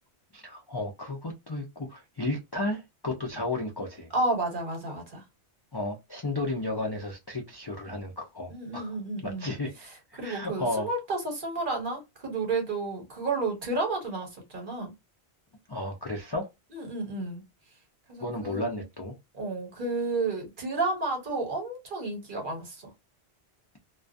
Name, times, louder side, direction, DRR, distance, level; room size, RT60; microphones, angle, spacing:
voice 1, 0.3-4.1 5.7-9.0 9.2-9.7 10.1-10.9 15.7-16.5 18.2-19.2, left 2 dB, 35° left, 0.4 m, -33 dB
voice 2, 4.1-5.2 8.5-9.5 9.9-14.9 16.7-17.4 18.1-18.6 19.3-22.9, right 3 dB, 55° right, 1.1 m, -31 dB
2.3 x 2.3 x 2.5 m
omnidirectional pair, 1.1 m